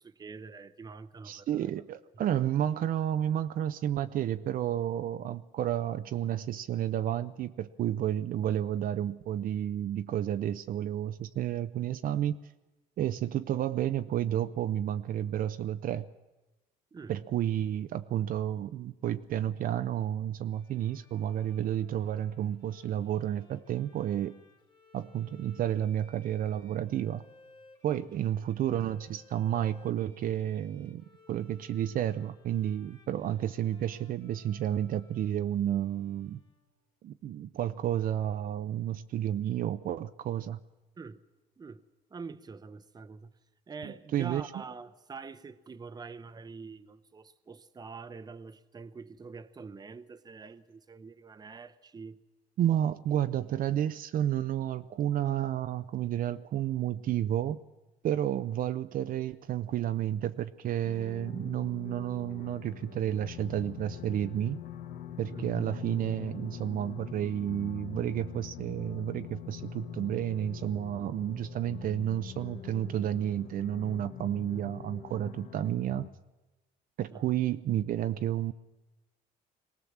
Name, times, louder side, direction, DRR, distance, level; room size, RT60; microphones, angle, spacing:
voice 1, 0.0-1.8 16.9-17.1 41.0-41.2 41.6-41.8 42.1-43.3 43.7-52.2 65.3-65.7 77.1-77.3, right 4 dB, 25° right, 0.8 m, -45 dB
voice 2, 1.2-12.4 13.0-16.1 17.1-24.3 24.9-27.2 27.8-36.4 37.0-40.6 43.8-44.5 52.6-57.6 58.0-64.6 65.2-76.1 77.0-78.5, right 11 dB, 55° right, 0.6 m, -31 dB
Bowed string instrument, 20.5-37.1, left 3 dB, 25° left, 2.8 m, -61 dB
sound 1, 60.8-76.1, left 9 dB, 65° left, 1.4 m, -44 dB
22.5 x 18.0 x 7.3 m
cardioid pair, 110°, 17 cm